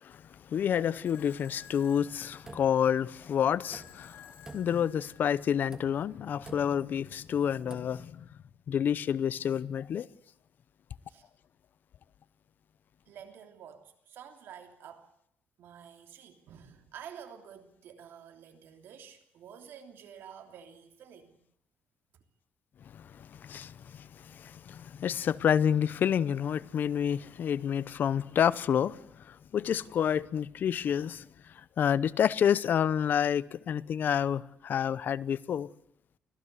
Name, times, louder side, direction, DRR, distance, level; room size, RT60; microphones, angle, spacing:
voice 1, 0.0-8.3 8.7-10.1 22.9-31.3 31.8-35.7, left 8 dB, 55° left, 0.8 m, -29 dB
sound 1, 1.1-6.1, left 9 dB, 75° left, 3.6 m, -56 dB
sound 2, 2.0-3.2 3.6-4.2 4.4-5.1 5.6-6.2 6.4-7.0 7.6-8.1, right 2 dB, 15° right, 2.6 m, -50 dB
voice 2, 13.0-15.1 15.6-21.4 22.1-22.2, right 8 dB, 75° right, 3.2 m, -50 dB
25.0 x 16.5 x 8.2 m
cardioid pair, 120°, 4 cm